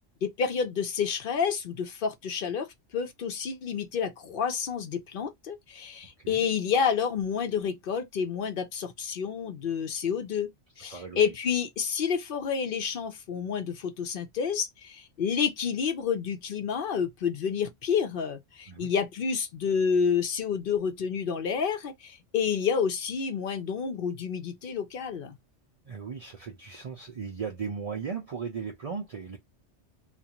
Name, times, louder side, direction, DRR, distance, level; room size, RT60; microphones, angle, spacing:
voice 1, 0.2-2.7 2.9-25.4, left 6 dB, 60° left, 0.7 m, -29 dB
voice 2, 10.9-11.2 18.7-18.9 25.9-29.4, right 6 dB, 55° right, 0.4 m, -37 dB
2.4 x 2.4 x 2.8 m
omnidirectional pair, 1.2 m